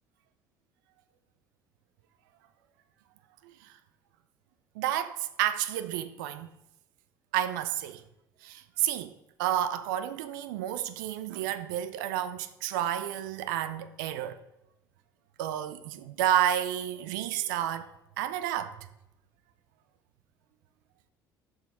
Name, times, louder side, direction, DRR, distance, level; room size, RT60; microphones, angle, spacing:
voice 1, 4.8-6.5 7.3-8.0 8.4-9.1 9.4-14.4 15.4-17.9 18.2-18.8, right 11 dB, 80° right, 0.4 m, -30 dB
6.8 x 4.6 x 4.7 m
hypercardioid pair, 60°, 10 cm